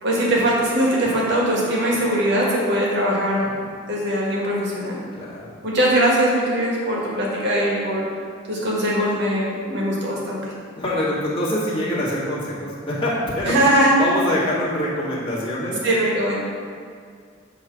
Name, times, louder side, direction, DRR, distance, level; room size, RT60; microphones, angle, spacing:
voice 1, 0.0-3.6 3.9-5.0 5.6-8.1 8.5-10.4 13.4-13.9 15.8-16.3, right 1 dB, 60° right, -4 dB, 1.6 m, -21 dB
voice 2, 5.1-5.5 10.8-15.8, left 1 dB, 25° left, -8 dB, 1.7 m, -25 dB
7.2 x 3.2 x 6.1 m, 2.1 s
head